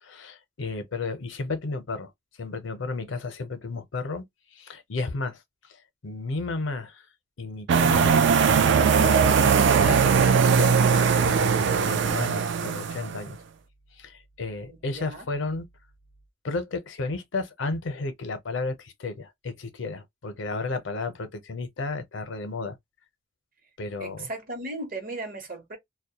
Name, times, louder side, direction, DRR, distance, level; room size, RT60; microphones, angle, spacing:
voice 1, 0.0-2.1 2.4-4.2 4.5-5.4 5.7-7.1 7.4-8.2 8.6-10.8 11.1-13.4 13.9-15.7 16.4-22.8 23.8-24.3, left 3 dB, 75° left, 0.6 m, -33 dB
sound 1, 7.7-13.2, right 6 dB, 65° right, 0.3 m, -20 dB
voice 2, 14.6-15.3 24.0-25.8, right 2 dB, 50° right, 0.9 m, -37 dB
2.2 x 2.1 x 2.7 m
head